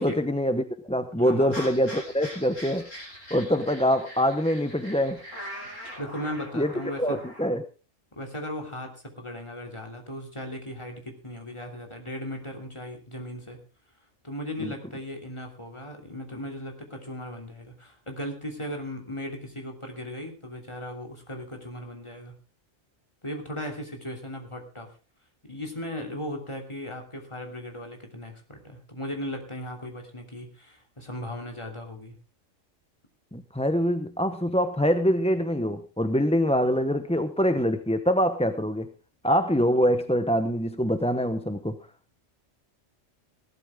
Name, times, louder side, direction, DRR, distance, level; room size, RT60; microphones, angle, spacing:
voice 1, 0.0-2.8 3.3-5.2 6.5-6.7 7.0-7.6 14.6-14.7 33.3-38.9 39.2-41.7, equal, 5° left, 9 dB, 0.7 m, -24 dB
voice 2, 1.2-1.6 6.0-7.2 8.1-13.6 14.2-22.4 23.2-24.9 25.4-32.1, equal, 20° left, 2 dB, 3.0 m, -37 dB
sound 1, 1.5-7.5, equal, 75° left, 7.6 m, -42 dB
18.0 x 12.0 x 3.6 m, 0.33 s
omnidirectional pair, 1.3 m